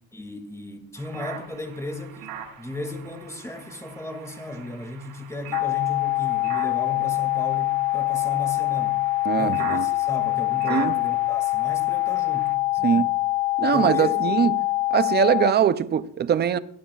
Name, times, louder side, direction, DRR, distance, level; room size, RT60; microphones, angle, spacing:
voice 1, 0.1-9.0 9.3-13.1 13.6-14.4, left 2 dB, 5° left, 2.1 m, -35 dB
sound 1, 0.9-12.5, right 8 dB, 80° right, 6.3 m, -42 dB
sound 2, 5.5-15.5, left 19 dB, 60° left, 0.5 m, -24 dB
voice 2, 9.3-9.8 10.7-10.9 12.8-13.1 13.6-14.5 14.9-16.6, right 8 dB, 25° right, 0.4 m, -21 dB
21.5 x 16.0 x 2.3 m
cardioid pair, 135°, 48 cm